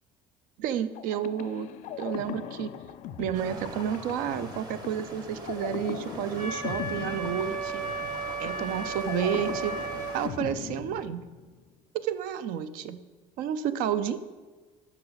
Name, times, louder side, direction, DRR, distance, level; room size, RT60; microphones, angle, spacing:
voice 1, 0.6-1.7 2.0-2.7 3.2-7.9 8.4-9.7 10.1-11.2 11.9-13.0 13.4-14.2, right 9 dB, 80° right, 13 dB, 0.6 m, -31 dB
sound 1, 0.9-11.6, left 10 dB, 60° left, 0.4 m, -40 dB
sound 2, 3.3-10.3, right 2 dB, 30° right, 1.1 m, -43 dB
Wind instrument woodwind instrument, 6.4-10.2, right 4 dB, 60° right, 1.7 m, -34 dB
12.0 x 5.8 x 4.0 m, 1.4 s
cardioid pair, 165°, 14 cm